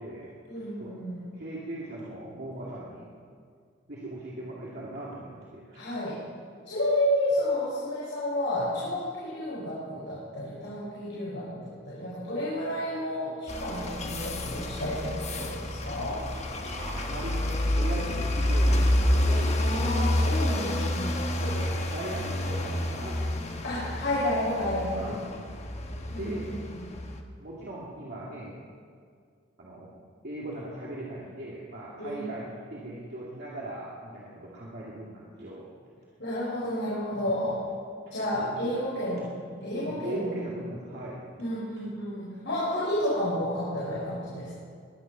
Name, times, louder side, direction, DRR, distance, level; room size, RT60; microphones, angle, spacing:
voice 1, 0.5-1.3 5.7-6.2 6.7-16.3 19.6-21.2 23.6-25.2 26.1-26.8 32.0-32.3 36.2-37.6 38.1-39.3 39.6-40.4 41.4-44.6, left 1 dB, 70° left, -8 dB, 5.3 m, -31 dB
voice 2, 1.3-3.1 3.9-5.8 14.9-15.1 16.7-19.7 20.5-24.0 24.9-25.3 26.0-26.5 27.4-28.5 29.6-29.9 30.2-35.7 37.1-37.3 38.4-38.7 39.1-39.2 39.7-41.3, right 1 dB, 60° right, -6 dB, 2.6 m, -39 dB
sound 1, 13.5-27.2, left 1 dB, 35° left, 1.2 m, -28 dB
22.0 x 10.0 x 5.9 m, 2.2 s
head